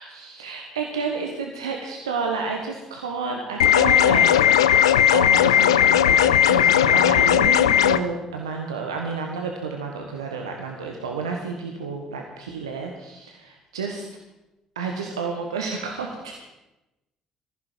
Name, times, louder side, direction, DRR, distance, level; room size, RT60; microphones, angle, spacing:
voice 1, 0.0-14.1 14.7-16.4, right 4 dB, 80° right, 2 dB, 1.3 m, -31 dB
sound 1, 3.6-8.0, left 10 dB, 75° left, 0.5 m, -17 dB
20.0 x 15.0 x 4.5 m, 1.0 s
figure-of-eight pair, 45°, 3 cm